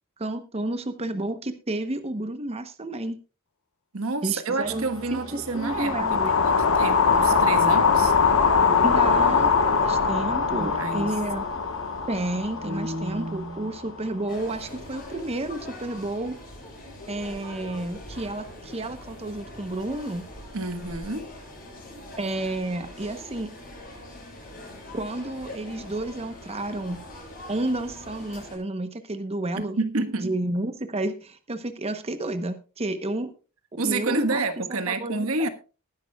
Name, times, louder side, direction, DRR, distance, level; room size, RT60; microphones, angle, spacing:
voice 1, 0.2-3.2 4.2-4.8 5.1-6.3 8.8-11.4 12.1-16.4 17.1-20.3 22.2-23.5 24.9-27.1 27.5-29.8 30.2-33.3 33.7-34.4 34.9-35.5, right 1 dB, 30° right, 0.9 m, -31 dB
voice 2, 3.9-8.1 10.5-11.1 12.6-13.7 20.5-21.3 29.5-30.3 33.8-35.5, right 3 dB, 75° right, 1.4 m, -29 dB
sound 1, 4.6-15.8, right 1 dB, 20° left, 7.4 m, -44 dB
sound 2, 5.6-13.8, left 5 dB, 75° left, 1.2 m, -22 dB
sound 3, 14.3-28.6, left 1 dB, 40° left, 7.8 m, -42 dB
20.0 x 11.0 x 2.3 m
head